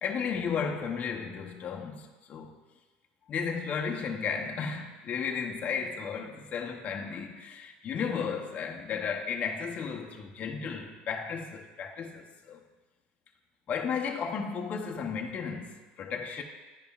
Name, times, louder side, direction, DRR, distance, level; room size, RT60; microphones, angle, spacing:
voice 1, 0.0-2.5 3.3-12.6 13.7-16.4, left 6 dB, 40° left, 0.8 m, -34 dB
10.5 x 5.1 x 2.4 m
supercardioid pair, 110°, 4 cm